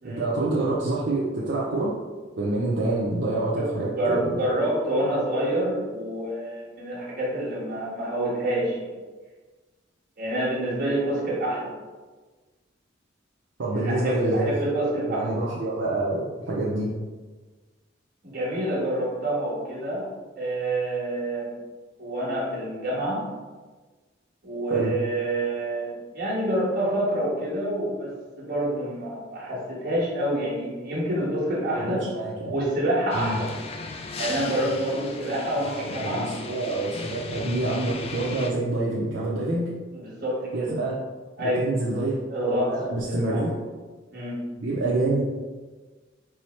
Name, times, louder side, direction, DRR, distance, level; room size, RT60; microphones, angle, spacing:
voice 1, 0.0-1.9 2.4-4.3 13.6-14.5 15.1-16.9 24.7-25.0 31.8-32.5 33.1-33.4 35.6-39.7 40.5-41.0 41.4-42.2 42.7-43.5 44.6-45.2, right 2 dB, 70° right, -5 dB, 0.6 m, -27 dB
voice 2, 3.6-8.9 10.2-11.7 13.7-15.3 18.2-20.1 20.4-21.5 22.0-23.2 24.4-32.0 32.5-33.5 34.2-36.3 39.9-40.7 41.4-41.7 42.3-43.4 44.1-44.4, right 1 dB, 50° right, -6 dB, 1.4 m, -27 dB
sound 1, 33.1-38.5, left 3 dB, 30° left, 0.3 m, -36 dB
4.6 x 2.1 x 4.3 m, 1.3 s
head